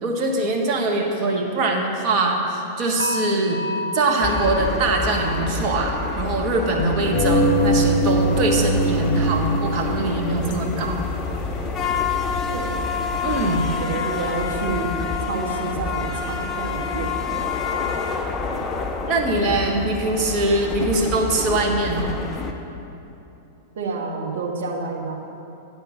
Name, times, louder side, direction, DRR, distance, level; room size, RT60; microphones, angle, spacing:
voice 1, 0.0-3.6 3.9-11.0 13.2-13.7 19.1-22.1, right 2 dB, 40° right, 0 dB, 1.5 m, -22 dB
sound 1, 3.0-10.1 10.4-10.8 11.2-11.4, left 2 dB, 90° left, 0.4 m, -35 dB
sound 2, 4.2-22.5, left 4 dB, 20° left, 0.8 m, -28 dB
sound 3, 7.1-13.7, equal, 50° left, 0.9 m, -23 dB
voice 2, 12.5-15.0 15.3-17.2 19.6-20.0 23.7-25.2, right 3 dB, 65° right, -1 dB, 1.4 m, -29 dB
9.7 x 4.4 x 7.1 m, 2.9 s
figure-of-eight pair, 95°, 0 cm